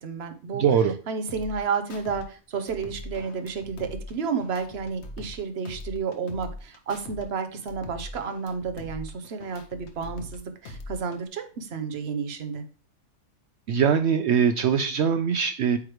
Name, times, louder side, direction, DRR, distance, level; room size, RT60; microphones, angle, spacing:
voice 1, 0.0-0.6 1.1-12.6, right 5 dB, 50° right, 8 dB, 0.9 m, -31 dB
voice 2, 0.5-0.9 13.7-15.8, right 7 dB, 70° right, 9 dB, 0.6 m, -22 dB
sound 1, 1.3-2.2 2.5-5.4 5.6-7.2 7.5-10.4 10.6-11.3, left 1 dB, 50° left, 1.0 m, -41 dB
8.5 x 3.2 x 4.7 m, 0.37 s
omnidirectional pair, 1.6 m